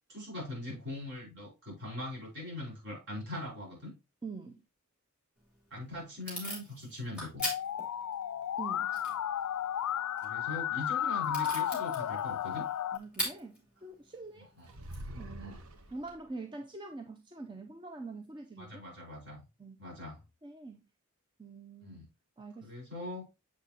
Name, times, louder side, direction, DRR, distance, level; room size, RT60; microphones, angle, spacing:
voice 1, 0.1-3.9 5.7-7.4 10.2-12.6 14.4-14.7 15.4-15.6 18.6-19.4 19.8-20.2 21.8-22.0 22.6-23.3, left 1 dB, 50° right, 4.8 m, -41 dB
voice 2, 4.2-4.6 8.6-9.0 12.9-14.5 15.2-15.6 15.9-18.8 19.6-19.8 20.4-20.8 21.4-22.0 22.4-22.7, right 3 dB, 20° right, 0.5 m, -45 dB
Packing tape duct tape / Tearing, 5.4-16.1, left 1 dB, 5° right, 3.4 m, -44 dB
Musical instrument, 7.4-13.0, left 10 dB, 80° left, 0.3 m, -33 dB
sound 1, 14.6-16.3, right 1 dB, 75° right, 0.9 m, -45 dB
7.4 x 6.0 x 2.9 m
head